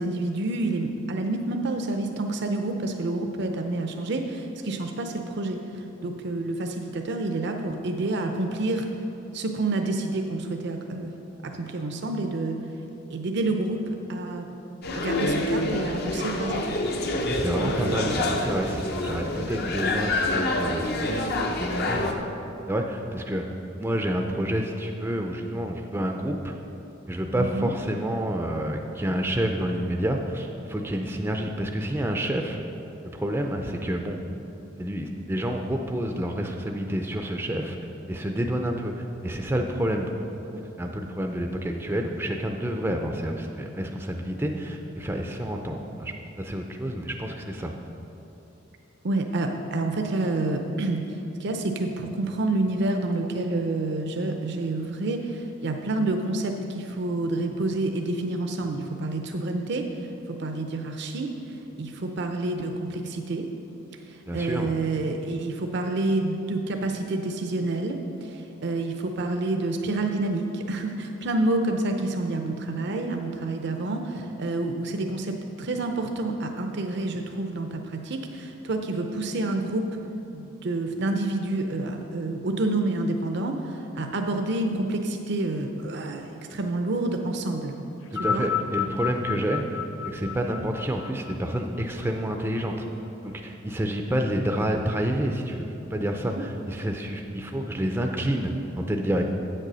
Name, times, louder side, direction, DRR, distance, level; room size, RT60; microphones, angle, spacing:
voice 1, 0.0-8.9 9.3-11.1 11.4-12.6 13.1-13.8 14.1-14.5 14.9-16.8 17.1-18.1 27.4-27.7 49.0-63.5 64.1-79.9 80.3-87.7 88.1-88.4 96.3-96.4, right 2 dB, 60° right, 4 dB, 0.6 m, -28 dB
sound 1, 14.8-22.1, left 2 dB, 55° left, 0.8 m, -27 dB
voice 2, 17.2-21.3 21.6-22.1 22.7-26.5 27.1-32.6 33.0-34.2 34.8-37.8 38.1-38.9 39.2-40.1 40.5-47.7 64.3-64.7 88.1-89.8 90.0-92.9 93.2-99.2, right 1 dB, 10° right, 3 dB, 0.4 m, -29 dB
sound 2, 88.0-92.6 93.5-93.6, left 7 dB, 85° left, 0.5 m, -32 dB
8.2 x 6.7 x 6.1 m, 2.9 s
head